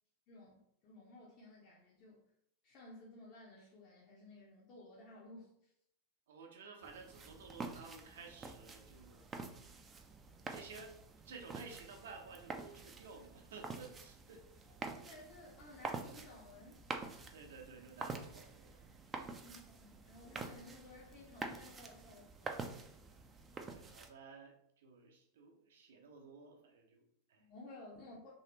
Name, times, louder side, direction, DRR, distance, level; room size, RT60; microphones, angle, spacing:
voice 1, 0.3-2.3 2.6-5.7 15.0-16.8 19.2-22.8 27.4-28.3, left 2 dB, 35° left, -5 dB, 0.7 m, -56 dB
voice 2, 6.3-9.3 9.5-9.6 10.5-11.0 11.2-14.7 17.3-18.8 19.1-19.4 23.5-27.5, right 4 dB, 60° right, 3 dB, 0.6 m, -54 dB
sound 1, 6.8-24.1, right 3 dB, 20° right, 0.4 m, -48 dB
3.2 x 2.8 x 2.9 m, 0.74 s
figure-of-eight pair, 90°, 0 cm